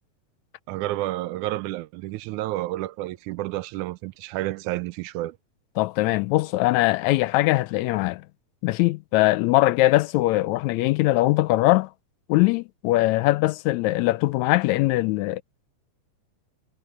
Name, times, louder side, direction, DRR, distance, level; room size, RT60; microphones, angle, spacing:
voice 1, 0.7-5.4, right 16 dB, 80° right, 2.0 m, -30 dB
voice 2, 5.8-8.2 8.6-11.9 12.3-15.4, left 18 dB, 80° left, 1.7 m, -21 dB
omnidirectional pair, 3.6 m